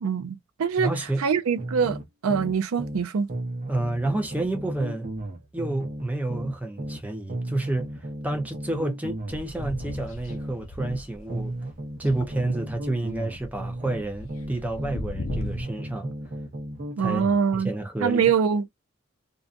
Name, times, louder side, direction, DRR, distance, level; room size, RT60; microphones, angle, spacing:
voice 1, 0.0-0.9 1.2-3.3 17.0-17.7 18.0-18.6, right 6 dB, 85° right, 0.4 m, -24 dB
voice 2, 0.8-1.2 3.7-5.1 5.5-11.5 12.0-16.1 17.0-17.3 17.5-18.3, right 2 dB, 10° right, 0.6 m, -29 dB
sound 1, 1.6-3.0 3.3-7.0 7.3-11.0 11.3-15.0 15.3-17.4, right 1 dB, 40° right, 0.9 m, -35 dB
sound 2, 9.3-11.6 11.9-15.6, left 2 dB, 70° left, 0.6 m, -38 dB
2.5 x 2.2 x 2.5 m
head